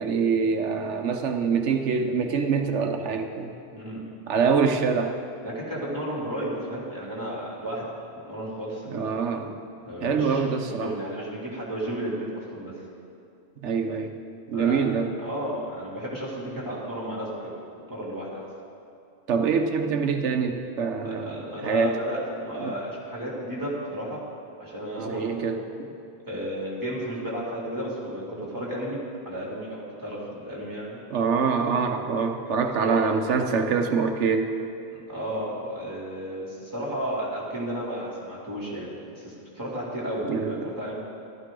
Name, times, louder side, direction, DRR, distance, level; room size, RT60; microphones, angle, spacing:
voice 1, 0.0-3.5 4.3-5.2 8.9-9.6 10.0-11.0 13.6-14.1 14.5-15.1 19.3-22.0 22.6-22.7 25.0-25.9 31.1-34.6 40.3-40.7, right 5 dB, 85° right, 5 dB, 1.2 m, -25 dB
voice 2, 3.7-4.1 5.4-7.9 8.3-9.0 9.8-12.7 14.5-14.8 15.2-17.5 17.9-18.4 21.0-24.2 24.6-25.5 26.3-31.0 32.8-33.0 35.1-40.9, equal, 15° right, -5 dB, 3.0 m, -33 dB
14.5 x 12.5 x 3.8 m, 2.6 s
omnidirectional pair, 1.2 m